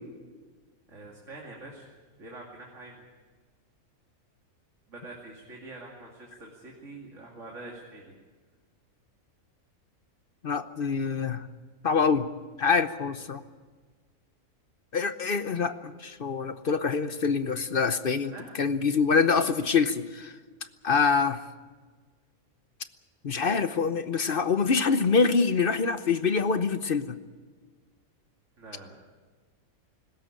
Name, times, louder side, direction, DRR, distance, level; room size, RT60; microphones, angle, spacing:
voice 1, 0.9-3.0 4.9-8.1 18.3-18.7 28.6-28.9, right 2 dB, 55° right, -2 dB, 3.0 m, -45 dB
voice 2, 10.4-11.5 11.8-12.3 12.6-13.4 14.9-18.3 18.6-20.3 20.8-21.4 23.2-27.2, left 5 dB, 45° left, 11 dB, 0.9 m, -25 dB
20.0 x 16.5 x 8.9 m, 1.4 s
omnidirectional pair, 1.5 m